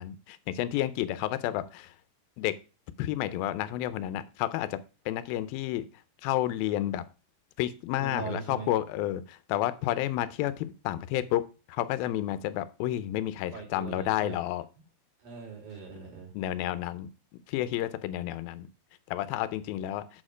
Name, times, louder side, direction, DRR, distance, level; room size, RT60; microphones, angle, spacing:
voice 1, 0.0-1.9 2.4-2.5 3.0-4.8 5.1-5.9 6.2-7.0 7.6-11.4 11.7-14.7 16.3-17.1 17.5-18.7 19.1-20.0, left 13 dB, 90° left, 13 dB, 2.5 m, -30 dB
voice 2, 8.0-8.7 13.5-14.3 15.2-16.3, right 4 dB, 80° right, 1 dB, 4.8 m, -40 dB
8.1 x 6.4 x 5.0 m, 0.32 s
omnidirectional pair, 4.1 m